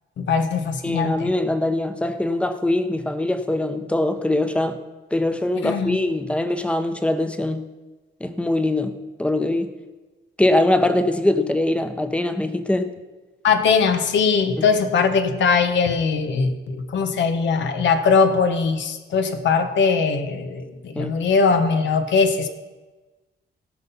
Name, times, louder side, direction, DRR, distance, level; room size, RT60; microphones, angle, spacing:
voice 1, 0.2-1.3 5.6-6.0 13.4-22.5, left 5 dB, 85° left, 8 dB, 1.2 m, -20 dB
voice 2, 0.8-4.8 5.1-7.6 8.2-9.7 10.4-12.9 14.6-14.7 21.0-21.2, left 1 dB, 5° left, 9 dB, 0.8 m, -22 dB
17.5 x 5.8 x 5.5 m, 1.2 s
wide cardioid pair, 135°, 18 cm